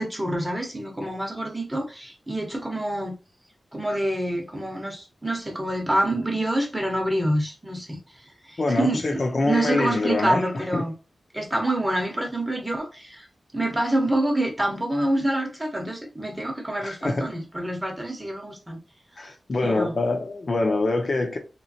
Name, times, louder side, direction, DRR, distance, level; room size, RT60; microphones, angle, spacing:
voice 1, 0.0-3.2 3.7-8.0 8.5-10.9 11.3-13.3 13.5-18.8 19.6-20.0, right 1 dB, 10° right, 0.8 m, -27 dB
voice 2, 8.6-10.9 16.8-17.3 19.2-21.4, left 2 dB, 45° left, 0.5 m, -25 dB
3.2 x 3.0 x 2.6 m
wide cardioid pair, 160°, 0 cm